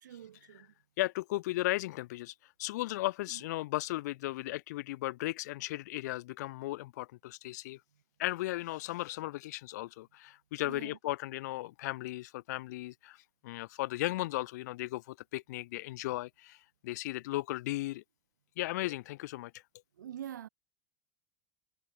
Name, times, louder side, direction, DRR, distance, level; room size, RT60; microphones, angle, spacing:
voice 1, 0.0-0.7 3.3-3.4 10.6-11.0 20.0-20.5, right 10 dB, 75° right, 3.0 m, -45 dB
voice 2, 1.0-7.8 8.2-13.2 13.4-16.6 16.8-18.0 18.6-19.5, left 18 dB, 65° left, 0.6 m, -36 dB
figure-of-eight pair, 80°, 10 cm